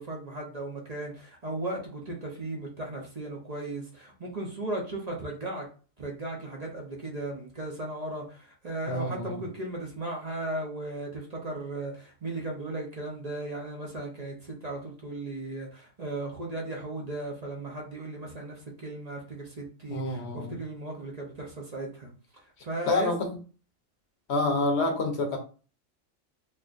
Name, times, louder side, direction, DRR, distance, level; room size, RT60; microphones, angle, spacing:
voice 1, 0.0-5.7 6.0-23.1, right 2 dB, 35° right, -1 dB, 0.8 m, -36 dB
voice 2, 8.9-9.3 19.9-20.6 22.9-23.3 24.3-25.4, left 2 dB, 55° left, 4 dB, 1.1 m, -27 dB
4.4 x 3.0 x 2.5 m, 0.37 s
omnidirectional pair, 1.4 m